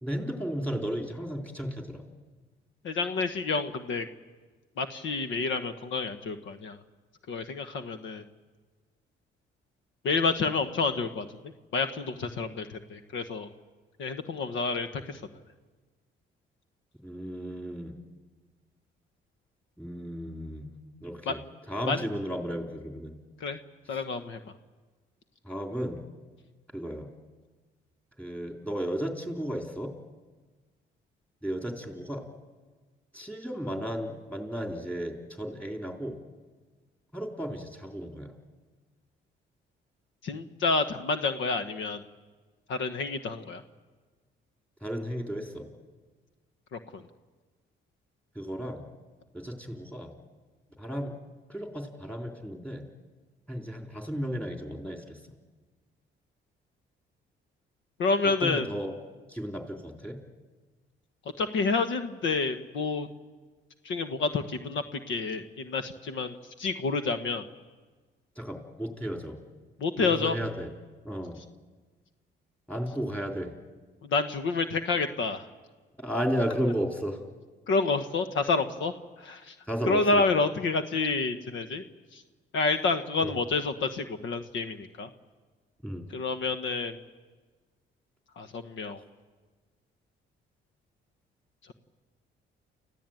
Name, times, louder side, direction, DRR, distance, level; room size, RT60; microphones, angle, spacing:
voice 1, 0.0-2.0 17.0-17.9 19.8-20.7 21.0-21.4 21.7-23.1 25.4-26.0 26.7-27.1 28.2-29.9 31.4-32.3 33.1-36.2 37.1-38.3 44.8-45.7 48.4-48.8 49.3-50.1 50.8-51.1 51.5-52.8 53.5-55.2 58.2-58.9 59.3-60.2 68.4-69.4 70.0-70.7 71.0-71.4 72.7-73.5 76.0-77.2 79.7-80.2 83.2-83.4 85.8-86.1, equal, 5° left, 3 dB, 3.9 m, -34 dB
voice 2, 2.8-4.1 4.8-6.8 7.3-8.2 10.0-11.3 11.7-13.5 14.0-15.2 21.3-21.4 21.9-22.0 23.4-23.6 23.9-24.4 40.2-42.0 42.7-43.6 46.7-47.0 58.0-58.7 61.4-63.1 63.8-67.4 69.8-70.4 74.0-75.5 77.7-78.9 79.2-79.5 79.9-81.8 82.1-82.2 82.5-85.1 86.1-87.0 88.4-89.0, left 4 dB, 75° left, 9 dB, 1.3 m, -29 dB
29.0 x 15.0 x 9.2 m, 1.3 s
cardioid pair, 90°, 20 cm